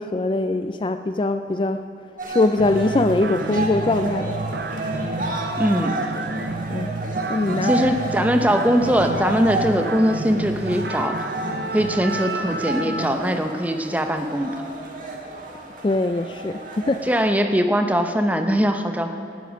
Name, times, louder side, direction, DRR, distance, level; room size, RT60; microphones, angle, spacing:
voice 1, 0.0-1.8 2.3-4.4 6.7-7.0 7.3-7.8 15.8-17.0, left 2 dB, 30° left, 9 dB, 0.3 m, -22 dB
sound 1, 2.2-17.3, right 2 dB, 50° right, 1.7 m, -32 dB
sound 2, 2.6-13.1, right 2 dB, 70° right, 0.8 m, -30 dB
voice 2, 5.6-6.0 7.6-11.2 11.7-14.6 17.0-19.2, equal, 10° right, 6 dB, 0.8 m, -21 dB
18.5 x 9.2 x 6.2 m, 2.9 s
head